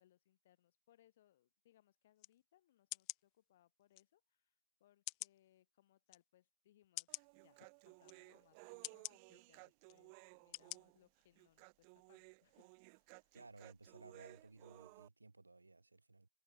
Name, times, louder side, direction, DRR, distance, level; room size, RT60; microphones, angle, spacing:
voice 1, 0.0-4.5 4.8-13.4, left 13 dB, 50° left, 7.6 m, -73 dB
sound 1, 2.2-2.3 2.9-3.2 4.0-4.1 5.1-5.4 6.1-6.2 7.0-7.3 8.0-8.2 8.8-9.2 9.9-10.0 10.5-10.8 11.2-11.3, left 30 dB, 35° left, 1.6 m, -46 dB
Human voice, 7.1-15.1, right 40 dB or more, 35° right, 6.7 m, -60 dB
voice 2, 13.3-16.3, right 3 dB, 85° right, 4.9 m, -59 dB
figure-of-eight pair, 120°, 0 cm